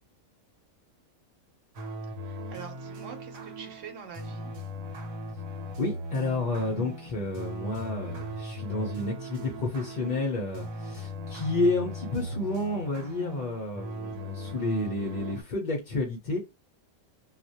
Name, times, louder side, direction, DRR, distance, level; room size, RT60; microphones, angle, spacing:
sound 1, 1.7-15.4, equal, 90° right, 1.1 m, -39 dB
voice 1, 2.1-4.5, right 6 dB, 70° right, 1.0 m, -45 dB
voice 2, 5.8-16.4, left 2 dB, 55° left, 0.5 m, -30 dB
2.3 x 2.1 x 2.7 m
omnidirectional pair, 1.4 m